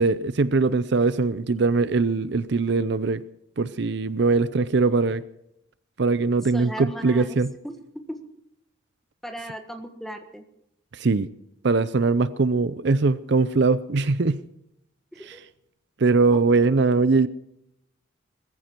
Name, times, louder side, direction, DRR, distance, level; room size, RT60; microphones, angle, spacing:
voice 1, 0.0-3.2 3.6-5.2 6.0-7.5 10.9-11.3 11.6-14.4 16.0-17.3, right 3 dB, 55° right, 0.5 m, -21 dB
voice 2, 6.5-7.4 7.6-7.8 8.1-8.2 9.2-10.4 15.1-15.4 16.3-16.4, equal, ahead, 1.5 m, -37 dB
20.5 x 14.5 x 4.5 m
head